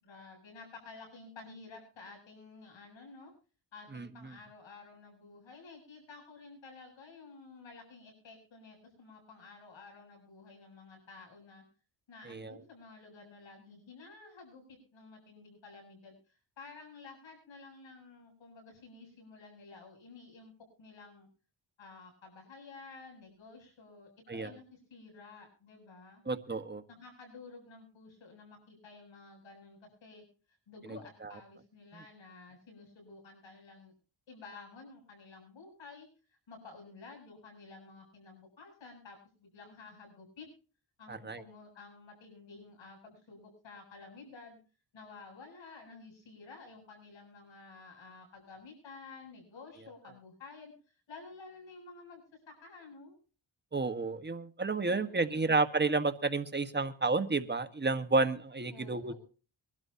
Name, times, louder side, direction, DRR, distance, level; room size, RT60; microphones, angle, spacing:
voice 1, 0.0-3.3 3.7-11.6 12.1-20.5 20.8-21.3 21.8-26.2 26.9-30.2 30.7-33.9 34.3-40.5 41.0-44.6 44.9-50.7 51.1-53.2 54.8-55.6 58.7-59.2, left 4 dB, 75° left, 3 dB, 7.9 m, -52 dB
voice 2, 3.9-4.3 12.2-12.6 24.3-24.5 26.3-26.8 31.9-32.0 41.1-41.4 53.7-59.1, right 3 dB, 20° right, 10 dB, 1.5 m, -31 dB
24.0 x 12.5 x 2.8 m, 0.37 s
cardioid pair, 65°, 46 cm